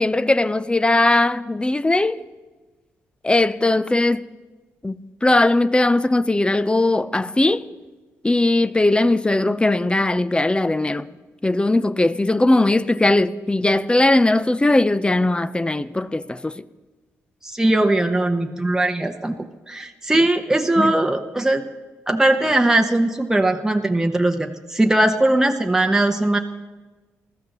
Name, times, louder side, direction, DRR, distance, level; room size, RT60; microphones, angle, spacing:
voice 1, 0.0-2.2 3.2-4.3 4.8-5.0 5.2-7.7 8.2-11.1 11.4-16.6 20.8-20.9, left 2 dB, 15° left, 0.5 m, -19 dB
voice 2, 17.4-19.3 19.7-21.6 22.1-26.4, right 1 dB, 10° right, 1.0 m, -19 dB
20.0 x 13.0 x 3.0 m
supercardioid pair, 50°, 6 cm